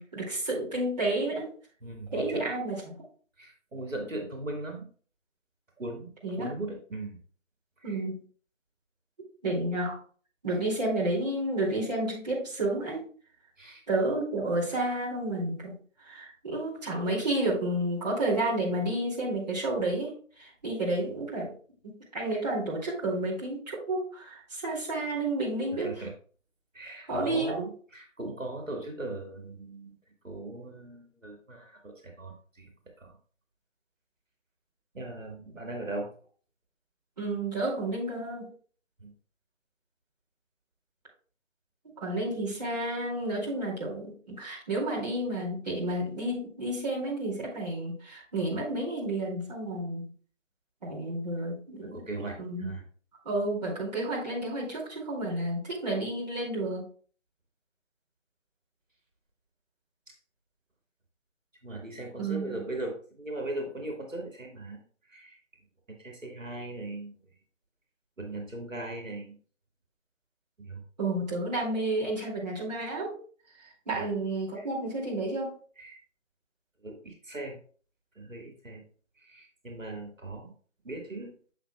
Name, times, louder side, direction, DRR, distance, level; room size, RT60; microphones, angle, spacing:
voice 1, 0.0-1.5 2.1-3.0 6.2-6.5 7.8-8.2 9.4-10.0 10.4-13.0 13.9-15.7 16.0-20.1 20.4-21.5 21.8-25.9 27.1-27.5 37.2-38.5 42.0-50.1 50.8-52.0 52.4-52.7 53.2-56.8 62.2-62.6 71.0-73.1 73.9-75.5, right 1 dB, 30° right, -6 dB, 2.5 m, -31 dB
voice 2, 1.8-2.5 3.4-4.9 5.8-7.2 7.8-8.0 13.6-13.8 25.8-26.1 26.7-30.0 30.2-32.7 33.0-33.1 34.9-36.1 39.0-39.1 51.8-52.8 60.1-60.2 61.6-64.8 65.1-65.4 66.0-67.3 68.2-69.4 70.6-70.8 73.9-74.1 74.6-74.7 75.8-76.0 76.8-77.6 78.2-78.8 79.2-80.5 80.8-81.3, right 2 dB, 80° right, 1 dB, 2.0 m, -39 dB
7.4 x 6.7 x 2.3 m, 0.44 s
figure-of-eight pair, 160°, 38 cm